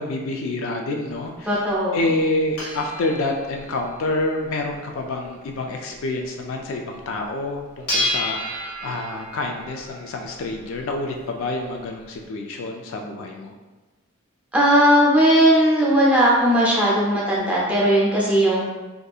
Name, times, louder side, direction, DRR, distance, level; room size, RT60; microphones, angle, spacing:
voice 1, 0.0-1.6 1.9-13.5, left 2 dB, 65° left, 2 dB, 0.3 m, -27 dB
sound 1, 1.1-6.6 6.9-7.0 7.3-12.2, left 1 dB, 80° left, 0.8 m, -32 dB
voice 2, 1.4-2.0 14.5-18.6, equal, 5° right, -6 dB, 0.4 m, -17 dB
2.7 x 2.5 x 2.3 m, 1.2 s
head